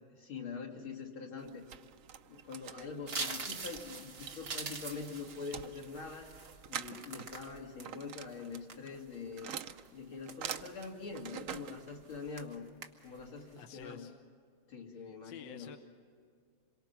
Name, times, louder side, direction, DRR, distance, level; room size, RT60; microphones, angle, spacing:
voice 1, 0.1-1.7 2.3-6.3 6.7-9.5 9.9-12.7 13.0-14.1 14.7-15.7, left 5 dB, 80° left, 0 dB, 3.3 m, -44 dB
sound 1, 1.4-12.5, right 9 dB, 75° right, 0.7 m, -47 dB
sound 2, 3.1-7.9 8.3-9.2 9.7-9.9 10.3-11.0 11.5-11.8 12.1-12.5 12.8-13.2 13.6-13.8, right 4 dB, 35° right, 1.3 m, -43 dB
voice 2, 13.6-14.2 15.2-15.8, left 8 dB, 65° left, 5 dB, 1.6 m, -49 dB
27.0 x 23.5 x 5.9 m, 2.2 s
omnidirectional pair, 2.2 m